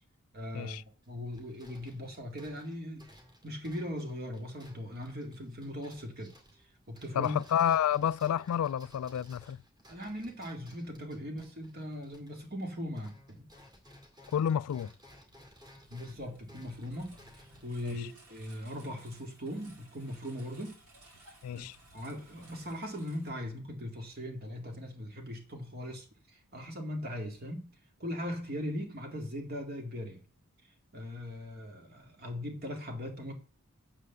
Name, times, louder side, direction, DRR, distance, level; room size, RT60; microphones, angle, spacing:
voice 1, 0.3-3.0 3.4-6.4 6.9-7.4 9.9-13.5 15.9-20.8 21.5-21.7 21.9-27.7 28.0-30.2 30.9-33.3, left 1 dB, 45° right, 2.1 m, -39 dB
sound 1, 1.0-12.7 12.9-19.1, equal, 20° right, 2.1 m, -58 dB
voice 2, 7.1-9.6 14.3-14.9 17.8-18.1 21.4-21.8, left 9 dB, 80° left, 0.3 m, -30 dB
Engine, 15.3-24.0, right 1 dB, 80° right, 2.8 m, -58 dB
7.6 x 4.9 x 6.8 m
head